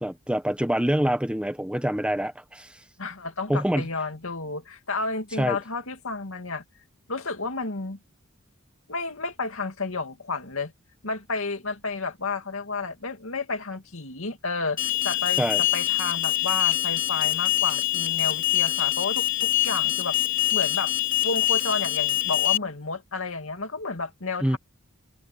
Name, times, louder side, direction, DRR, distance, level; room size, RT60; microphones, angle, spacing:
voice 1, 0.0-2.8 3.5-3.9 5.4-5.6 15.4-15.6 24.4-24.6, equal, 5° right, 0.8 m, -25 dB
voice 2, 3.0-6.6 7.1-8.0 8.9-10.7 11.0-20.2 20.5-20.9 21.2-24.6, left 3 dB, 75° left, 2.4 m, -31 dB
Alarm, 14.8-22.6, left 16 dB, 40° left, 3.3 m, -24 dB
head